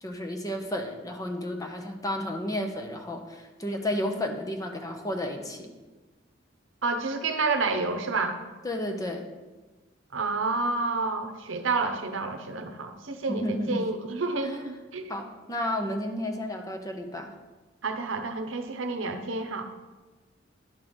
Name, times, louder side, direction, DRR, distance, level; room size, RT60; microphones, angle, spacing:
voice 1, 0.0-5.7 8.6-9.3 13.3-13.8 14.4-14.6 15.1-17.3, left 1 dB, 20° left, 3 dB, 0.7 m, -32 dB
voice 2, 6.8-8.4 10.1-15.1 17.8-19.6, right 3 dB, 65° right, 6 dB, 0.8 m, -29 dB
11.0 x 3.7 x 6.2 m, 1.2 s
head